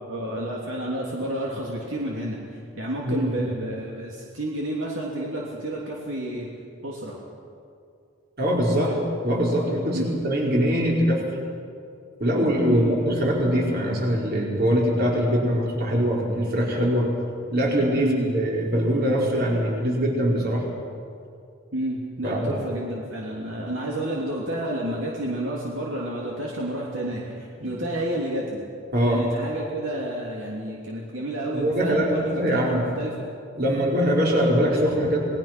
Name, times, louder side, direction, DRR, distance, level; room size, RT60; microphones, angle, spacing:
voice 1, 0.1-6.5 6.8-7.2 8.8-8.9 9.9-10.2 12.7-13.2 18.0-18.3 21.7-28.6 29.0-33.1, right 1 dB, 70° right, -3 dB, 3.0 m, -30 dB
voice 2, 3.0-3.4 8.4-8.9 9.2-11.2 12.2-17.1 17.5-20.6 22.2-22.6 27.6-27.7 28.9-29.2 31.5-32.8 33.6-35.2, equal, 50° right, -2 dB, 4.6 m, -22 dB
28.5 x 20.0 x 6.0 m, 2.4 s
head